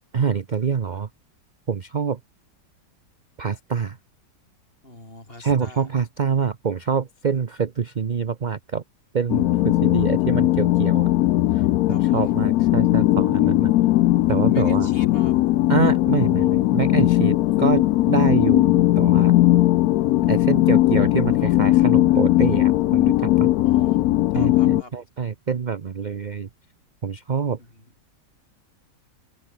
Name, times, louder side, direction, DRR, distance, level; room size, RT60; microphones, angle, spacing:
voice 1, 0.1-1.1 1.7-2.2 3.4-4.0 5.4-8.8 9.1-11.1 11.5-11.6 11.9-13.7 14.3-14.9 15.7-19.3 20.3-23.5 24.3-26.5 27.0-27.6, right 6 dB, 45° right, 0.5 m, -25 dB
voice 2, 4.8-5.9 11.9-12.4 14.5-15.4 23.6-24.0 24.3-25.0 27.6-27.9, left 1 dB, 30° left, 6.3 m, -43 dB
sound 1, 9.3-24.8, left 15 dB, 70° left, 0.9 m, -18 dB
open air
omnidirectional pair, 1.9 m